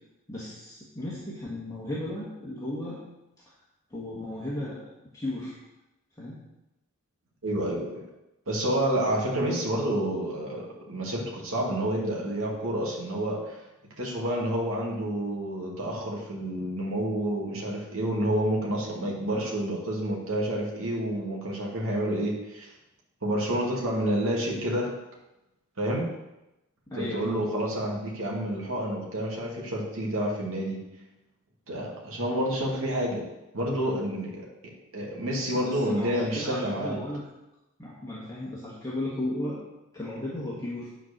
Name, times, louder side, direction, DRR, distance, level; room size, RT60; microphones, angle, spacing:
voice 1, 0.3-3.0 3.9-4.8 5.1-5.5 6.2-6.4 26.9-27.5 35.2-37.2 37.8-39.6 39.9-40.9, left 1 dB, 15° left, -7 dB, 1.5 m, -35 dB
voice 2, 7.4-8.0 8.5-13.6 14.0-22.7 23.2-24.9 25.8-26.1 27.0-30.8 31.7-33.2 33.5-37.0, right 1 dB, 60° right, -2 dB, 2.1 m, -29 dB
9.2 x 4.5 x 6.6 m, 0.95 s
head